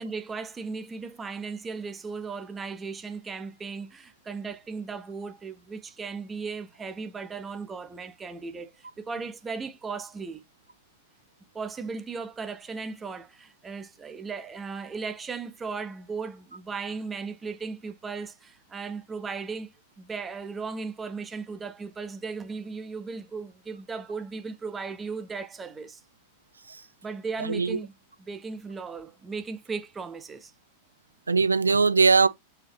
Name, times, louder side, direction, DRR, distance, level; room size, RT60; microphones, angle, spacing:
voice 1, 0.0-10.4 11.5-26.0 27.0-27.9 28.2-30.5, right 4 dB, 15° right, 0.7 m, -36 dB
voice 2, 27.4-27.8 31.3-32.3, right 4 dB, 75° right, 0.4 m, -21 dB
4.9 x 2.7 x 3.1 m
figure-of-eight pair, 90°, 0 cm